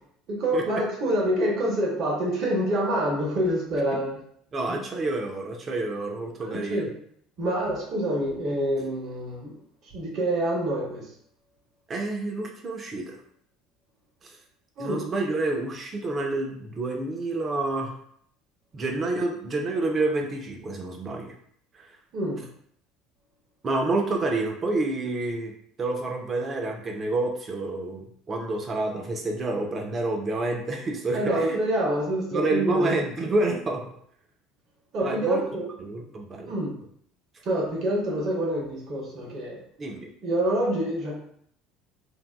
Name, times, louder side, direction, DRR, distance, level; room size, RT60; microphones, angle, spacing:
voice 1, 0.3-4.2 4.7-4.8 6.4-6.9 7.4-9.6 9.9-11.1 14.8-15.0 22.1-22.4 31.1-32.9 34.9-35.7 36.0-36.1 36.4-36.7 37.4-39.6 40.2-41.1, right 1 dB, 45° right, -2 dB, 0.9 m, -27 dB
voice 2, 4.5-6.9 11.9-13.2 14.2-14.3 14.8-17.9 18.7-21.3 23.6-25.5 25.8-31.6 32.3-33.8 35.0-35.4 35.8-36.5 39.8-40.1, right 2 dB, 30° right, 1 dB, 0.4 m, -28 dB
2.6 x 2.1 x 2.2 m, 0.65 s
figure-of-eight pair, 65°, 0 cm